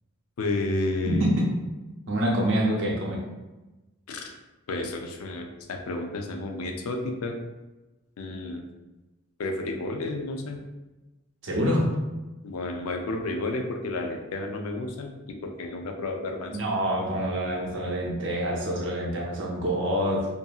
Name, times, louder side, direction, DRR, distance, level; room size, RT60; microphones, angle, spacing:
voice 1, 0.4-1.3 4.1-4.3 4.7-7.4 8.2-8.6 9.4-10.6 12.4-16.5, left 2 dB, 80° left, 3 dB, 0.4 m, -31 dB
voice 2, 1.1-1.5 2.1-3.2 11.4-11.9 16.5-20.3, equal, 60° right, -3 dB, 0.6 m, -26 dB
2.6 x 2.6 x 2.3 m, 1.1 s
head